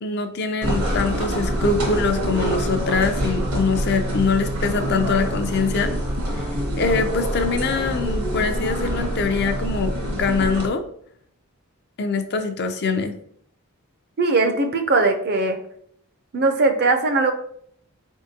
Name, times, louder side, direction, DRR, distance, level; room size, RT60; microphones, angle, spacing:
voice 1, 0.0-5.9 6.4-6.5 6.8-10.8 12.0-13.1, left 4 dB, 50° left, 7 dB, 0.5 m, -23 dB
sound 1, 0.6-10.7, equal, 80° right, 1.3 m, -25 dB
voice 2, 14.2-15.6 16.3-17.3, right 3 dB, 45° right, 7 dB, 0.5 m, -19 dB
4.3 x 3.6 x 2.8 m, 0.65 s
head